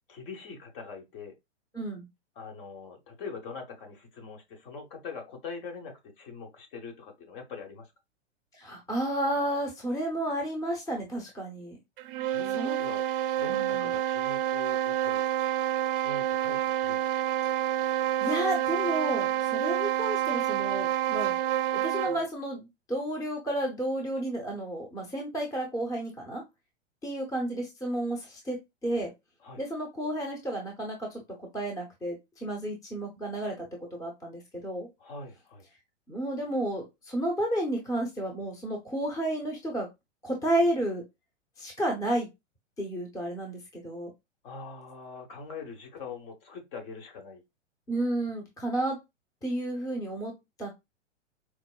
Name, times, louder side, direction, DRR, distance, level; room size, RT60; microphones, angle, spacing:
voice 1, 0.1-1.3 2.4-7.9 12.2-13.0 13.4-15.2 16.0-17.1 29.4-29.6 35.0-35.7 44.4-47.4, left 5 dB, 45° left, 1.1 m, -43 dB
voice 2, 1.7-2.1 8.5-11.8 12.6-12.8 13.5-13.9 17.7-21.4 21.7-26.4 27.0-29.1 29.6-31.2 31.5-33.7 34.0-34.9 36.1-39.9 40.2-41.0 41.6-42.3 42.8-44.1 47.9-49.0 49.4-50.3 50.6-50.7, right 1 dB, 10° left, 0.8 m, -32 dB
sound 1, 12.0-22.3, right 11 dB, 50° right, 0.4 m, -28 dB
4.6 x 2.0 x 2.3 m
hypercardioid pair, 110°, 36 cm